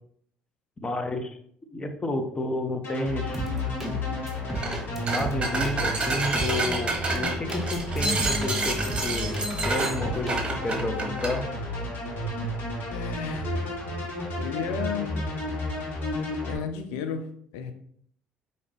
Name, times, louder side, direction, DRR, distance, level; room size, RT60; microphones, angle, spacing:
voice 1, 0.8-1.3 1.7-3.5 3.8-4.0 5.0-11.4, left 1 dB, 25° left, 5 dB, 0.8 m, -31 dB
sound 1, 2.8-16.5, left 1 dB, 55° left, 1.7 m, -32 dB
sound 2, 3.3-3.9 4.3-5.8 6.3-6.7 7.2-9.7 10.0-10.4, right 2 dB, 5° right, 1.2 m, -35 dB
sound 3, 4.5-4.8 5.1-11.4, right 2 dB, 25° right, 1.2 m, -29 dB
voice 2, 12.9-13.7 14.4-15.2 16.5-17.7, left 7 dB, 75° left, 8 dB, 0.5 m, -33 dB
5.0 x 2.8 x 3.3 m, 0.65 s
hypercardioid pair, 55°, 4 cm